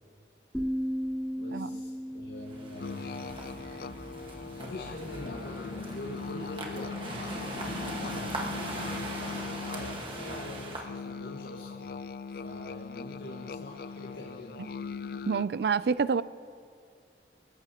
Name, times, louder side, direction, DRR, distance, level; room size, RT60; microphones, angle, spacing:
sound 1, 0.5-4.4, equal, 5° left, 0.6 m, -36 dB
voice 1, 1.4-3.0 4.6-11.9 12.4-14.7, left 1 dB, 75° left, 1.7 m, -44 dB
sound 2, 2.4-10.8, right 2 dB, 30° right, 1.5 m, -40 dB
sound 3, 2.8-15.4, left 5 dB, 55° left, 0.3 m, -40 dB
voice 2, 15.3-16.2, right 5 dB, 65° right, 0.4 m, -27 dB
26.5 x 14.5 x 2.9 m
head